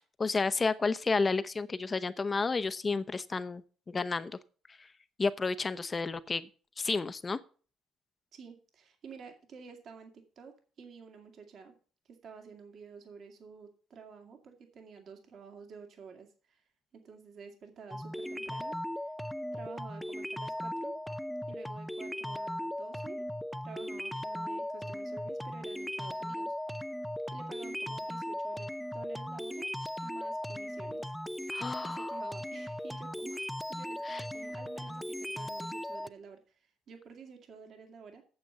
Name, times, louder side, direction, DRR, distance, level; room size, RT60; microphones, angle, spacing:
voice 1, 0.0-4.3 5.2-6.5 6.8-7.4 31.5-32.1 34.1-34.2, left 4 dB, 25° left, 13 dB, 0.8 m, -31 dB
voice 2, 8.3-11.7 12.1-16.6 16.9-19.1 19.5-21.0 21.5-23.2 23.6-26.6 27.3-29.7 30.0-31.1 31.8-38.2, right 5 dB, 55° right, 4 dB, 2.2 m, -51 dB
sound 1, 17.9-36.1, left 1 dB, ahead, 0.5 m, -38 dB
9.0 x 7.2 x 6.8 m, 0.41 s
cardioid pair, 95°, 0 cm